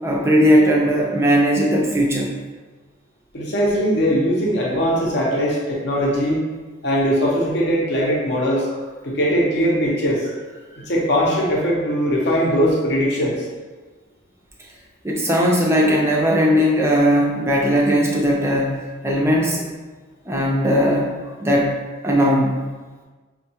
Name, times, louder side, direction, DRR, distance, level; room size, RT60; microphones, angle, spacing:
voice 1, 0.0-2.3 15.0-19.6 20.3-21.8 22.0-22.6, equal, 15° right, -2 dB, 0.4 m, -18 dB
voice 2, 3.3-6.4 6.8-8.7 9.0-10.3 10.9-13.3, equal, 55° left, -4 dB, 0.7 m, -20 dB
5.3 x 2.3 x 2.8 m, 1.3 s
head